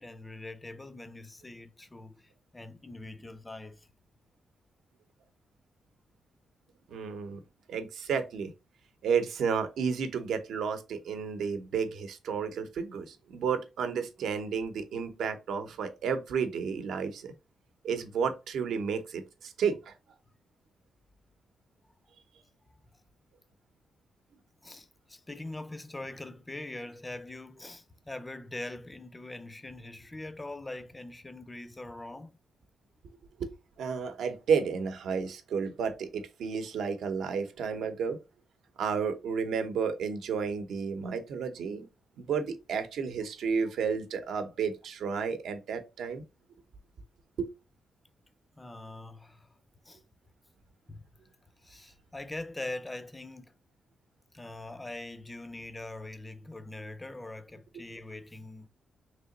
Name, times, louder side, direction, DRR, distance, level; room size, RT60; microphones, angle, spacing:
voice 1, 0.0-3.9 24.6-32.4 48.6-49.5 49.9-50.0 50.9-51.0 51.6-53.5 54.3-58.7, left 2 dB, 15° left, 0.4 m, -42 dB
voice 2, 6.9-7.4 7.7-8.5 9.0-17.3 17.8-19.9 33.4-33.5 33.8-38.2 38.8-41.9 42.2-46.2 47.4-47.5, right 6 dB, 75° right, 0.7 m, -32 dB
3.3 x 2.9 x 3.9 m
wide cardioid pair, 160°, 0 cm